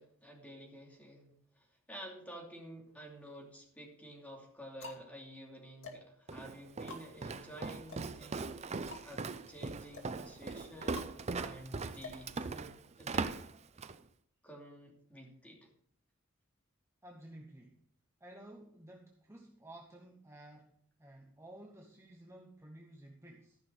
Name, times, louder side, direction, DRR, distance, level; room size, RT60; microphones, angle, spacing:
voice 1, 0.0-8.5 8.7-11.1 11.3-13.3 14.4-15.7, equal, 5° left, -1 dB, 2.8 m, -51 dB
sound 1, 2.9-3.6 4.2-13.0, left 4 dB, 60° left, 2.3 m, -52 dB
Walk footsteps, 6.3-14.0, right 4 dB, 30° right, 0.5 m, -40 dB
voice 2, 17.0-17.8 18.2-23.6, right 1 dB, 15° right, 0 dB, 1.0 m, -54 dB
14.0 x 5.9 x 6.4 m, 0.67 s
head